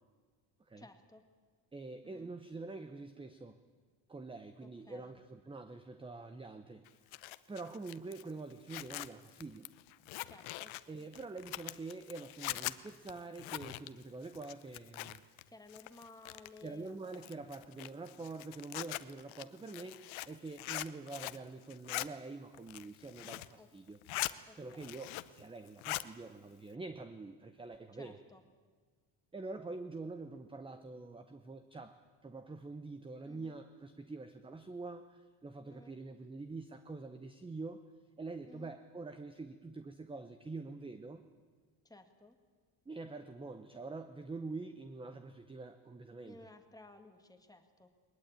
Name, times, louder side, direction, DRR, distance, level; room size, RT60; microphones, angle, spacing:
voice 1, 0.8-1.2 2.0-2.3 4.6-5.1 10.3-10.8 15.5-17.4 23.6-23.7 24.5-25.0 27.9-28.4 33.2-33.6 35.7-36.0 38.5-38.8 41.8-42.4 46.2-47.9, left 2 dB, 10° left, 5 dB, 2.0 m, -57 dB
voice 2, 1.7-3.6 4.1-6.8 7.5-9.7 10.9-15.2 16.6-24.0 24.5-28.2 29.3-32.0 32.2-37.8 38.2-41.2 42.9-46.4, right 3 dB, 10° right, 9 dB, 0.8 m, -46 dB
Zipper (clothing), 6.9-15.4 15.7-16.7 17.1-21.4 21.7-22.1 22.5-23.5 23.9-24.3 24.7-25.4 25.7-26.1, left 18 dB, 75° left, 0.9 m, -42 dB
21.0 x 20.0 x 9.0 m, 1.5 s
cardioid pair, 140°, 47 cm